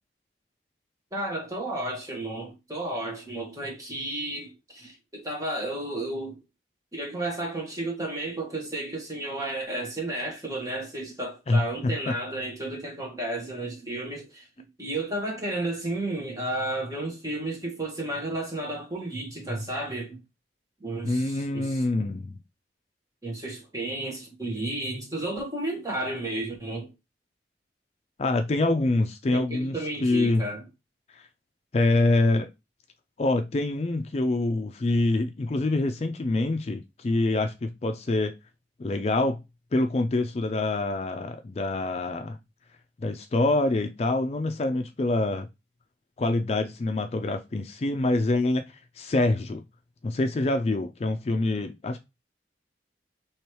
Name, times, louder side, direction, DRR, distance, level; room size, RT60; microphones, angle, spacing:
voice 1, 1.1-6.4 6.9-20.2 20.8-21.8 23.2-26.9 29.3-30.6, right 1 dB, 20° right, 1.4 m, -32 dB
voice 2, 11.5-12.1 21.0-22.4 28.2-29.8 30.0-30.4 31.1-31.3 31.7-32.5 33.2-38.3 38.8-39.4 39.7-42.4 43.0-45.5 46.2-48.6 49.0-49.6 50.0-52.0, left 2 dB, 35° left, 0.4 m, -25 dB
3.2 x 3.0 x 4.3 m
head